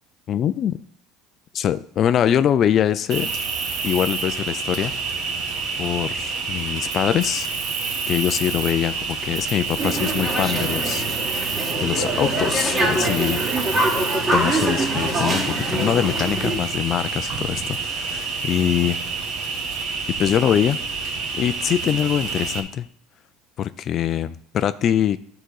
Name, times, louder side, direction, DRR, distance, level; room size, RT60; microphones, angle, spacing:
voice 1, 0.3-0.8 1.5-3.3 3.8-5.3 5.8-7.5 8.1-11.5 11.8-13.4 14.3-19.0 20.2-20.8 21.3-22.9 23.6-25.2, left 10 dB, 45° left, 13 dB, 0.4 m, -23 dB
Cricket, 3.1-22.6, right 4 dB, 60° right, 1.6 m, -28 dB
sound 1, 9.8-16.6, right 1 dB, 20° right, 2.0 m, -24 dB
11.0 x 3.9 x 6.4 m, 0.62 s
supercardioid pair, 110°, 0 cm